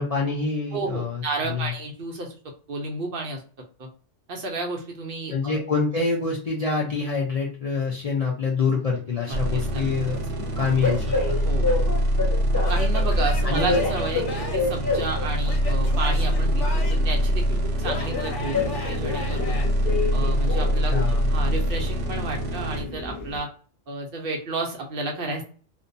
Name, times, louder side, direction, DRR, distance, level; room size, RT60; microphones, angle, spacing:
voice 1, 0.0-1.7 5.3-10.2 10.6-11.4 13.4-13.8 20.9-21.3, left 4 dB, 55° left, -3 dB, 0.4 m, -26 dB
voice 2, 0.7-2.4 2.7-3.4 3.8-3.9 4.3-5.6 9.3-9.8 11.5-11.9 12.7-18.6 18.9-19.6 20.1-21.0 21.3-23.5 23.9-25.4, right 3 dB, 60° right, 2 dB, 0.7 m, -31 dB
sound 1, 9.3-22.8, equal, 85° right, 0.9 m, -24 dB
Train, 9.4-23.4, left 4 dB, 20° left, 0.9 m, -31 dB
Male speech man speaking / Yell / Laughter, 12.6-14.8 15.4-17.2 17.8-19.7, left 3 dB, 90° left, 1.1 m, -34 dB
2.6 x 2.2 x 2.5 m, 0.41 s
omnidirectional pair, 1.2 m